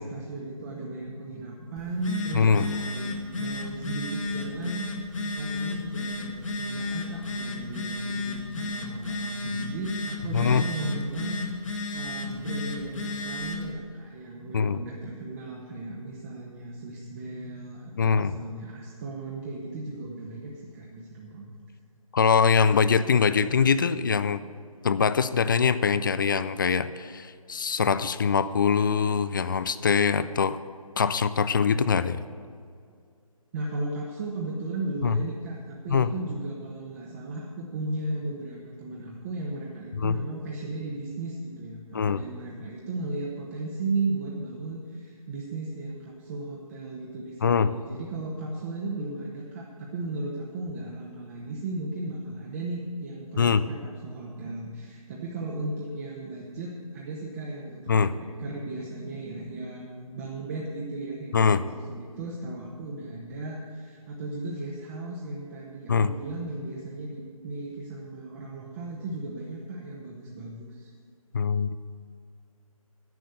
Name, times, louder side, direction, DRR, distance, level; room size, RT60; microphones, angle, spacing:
voice 1, 0.0-21.5 33.5-70.9, right 2 dB, 25° right, -3 dB, 1.2 m, -36 dB
Telephone, 1.8-13.7, left 2 dB, 60° left, 2.0 m, -33 dB
voice 2, 2.3-2.6 10.3-10.6 14.5-14.8 18.0-18.3 22.1-24.4 24.8-30.6 31.0-32.2 35.0-35.2 35.9-36.1 40.0-40.2 41.9-42.2 47.4-47.7 53.4-53.6 57.9-58.1 61.3-61.6 65.9-66.1 71.3-71.8, left 6 dB, 35° left, 14 dB, 0.4 m, -23 dB
10.5 x 9.2 x 6.8 m, 2.2 s
figure-of-eight pair, 145°, 19 cm